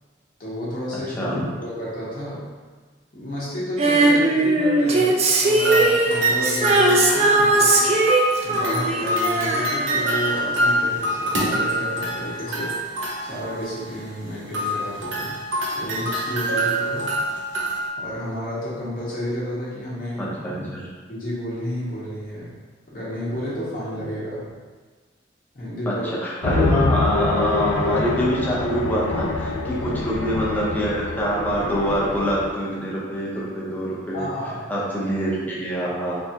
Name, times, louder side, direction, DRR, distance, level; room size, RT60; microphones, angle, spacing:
voice 1, 0.4-1.2 1.6-2.5 3.1-12.7 13.2-15.4 15.7-17.1 18.0-20.3 21.1-22.5 22.9-24.4 25.5-26.1 29.8-29.9 34.1-34.6, equal, 50° left, -8 dB, 1.0 m, -31 dB
voice 2, 1.1-1.4 20.2-20.9 25.9-26.0 26.2-34.3 34.7-36.2, equal, 10° left, -6 dB, 0.7 m, -25 dB
Female singing, 3.8-10.4 10.7-10.8, right 2 dB, 35° right, 0.4 m, -19 dB
sound 1, 5.6-13.9 14.5-17.9, equal, 80° right, 0.7 m, -25 dB
sound 2, 26.4-32.5, left 3 dB, 90° left, 0.4 m, -25 dB
3.3 x 3.3 x 2.8 m, 1.4 s
head